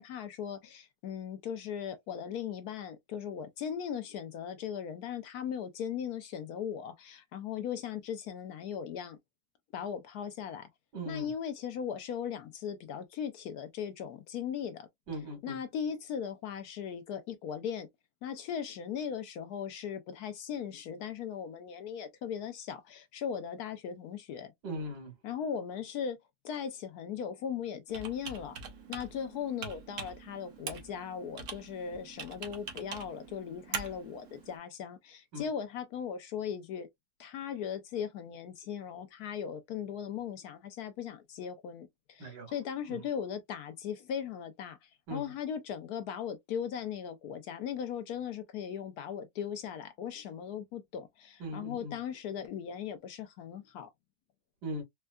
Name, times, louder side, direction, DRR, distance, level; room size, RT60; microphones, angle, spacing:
voice 1, 0.0-9.2 9.7-10.7 11.1-14.9 15.4-17.9 18.2-24.5 25.2-26.2 26.4-28.6 28.9-36.9 37.2-53.9, left 8 dB, 70° left, 1.0 m, -38 dB
voice 2, 10.9-11.3 15.1-15.6 24.6-25.1 35.3-35.5 42.2-42.5 42.9-43.0 45.1-45.3 51.4-52.0 54.6-54.8, equal, 85° right, 2.3 m, -39 dB
Computer keyboard, 27.9-34.6, right 5 dB, 55° right, 1.1 m, -44 dB
4.4 x 2.2 x 2.3 m
omnidirectional pair, 1.8 m